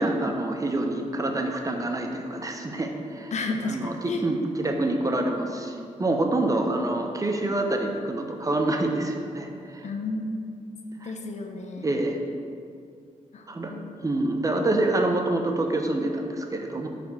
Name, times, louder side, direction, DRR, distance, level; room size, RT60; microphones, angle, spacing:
voice 1, 0.0-3.3 3.6-9.9 11.0-11.1 11.8-12.2 13.5-13.7 14.0-16.9, right 2 dB, 25° right, 3 dB, 0.7 m, -27 dB
voice 2, 3.3-4.3 9.8-10.3 11.0-11.9 13.3-13.9, left 3 dB, 60° left, 3 dB, 0.8 m, -32 dB
5.8 x 4.3 x 6.3 m, 2.3 s
cardioid pair, 95°, 13 cm